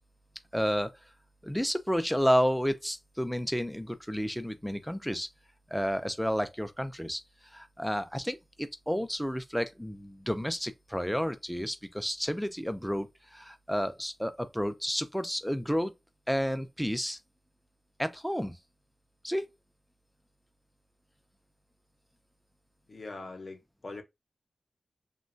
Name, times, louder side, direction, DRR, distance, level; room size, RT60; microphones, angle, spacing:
voice 1, 0.5-0.9 1.4-5.3 5.7-15.9 16.3-17.2 18.0-18.6 19.2-19.5, equal, ahead, 0.4 m, -31 dB
voice 2, 22.9-24.0, left 3 dB, 50° left, 0.7 m, -42 dB
3.0 x 2.2 x 2.5 m
wide cardioid pair, 95°, 0 cm